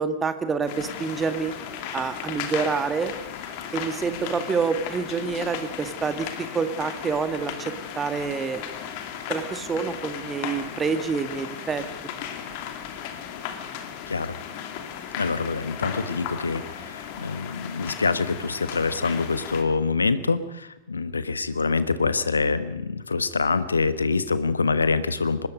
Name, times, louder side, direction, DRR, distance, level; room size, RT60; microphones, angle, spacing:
voice 1, 0.0-1.5 1.9-3.1 3.7-8.7 9.3-11.8, right 5 dB, 20° right, 9 dB, 1.9 m, -27 dB
sound 1, 0.7-19.6, left 8 dB, 45° left, 2.6 m, -36 dB
voice 2, 15.2-25.5, left 4 dB, 75° left, 14 dB, 1.2 m, -25 dB
24.5 x 20.0 x 5.3 m, 0.92 s
figure-of-eight pair, 90°, 0 cm